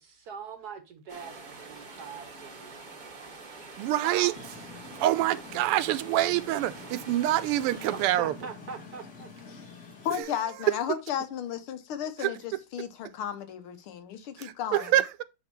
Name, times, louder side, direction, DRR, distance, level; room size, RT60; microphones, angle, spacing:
voice 1, 0.0-2.7 4.0-4.4 7.9-9.5, right 6 dB, 60° right, 1.0 m, -42 dB
sound 1, 1.1-8.1, right 3 dB, 35° right, 0.7 m, -46 dB
voice 2, 3.8-4.3 5.0-8.4 10.2-10.3 12.2-12.3 14.4-15.2, right 14 dB, 90° right, 1.5 m, -26 dB
sound 2, 4.3-10.2, left 4 dB, 35° left, 1.9 m, -47 dB
voice 3, 10.1-14.9, left 9 dB, 75° left, 1.7 m, -34 dB
8.7 x 3.3 x 4.5 m
omnidirectional pair, 2.4 m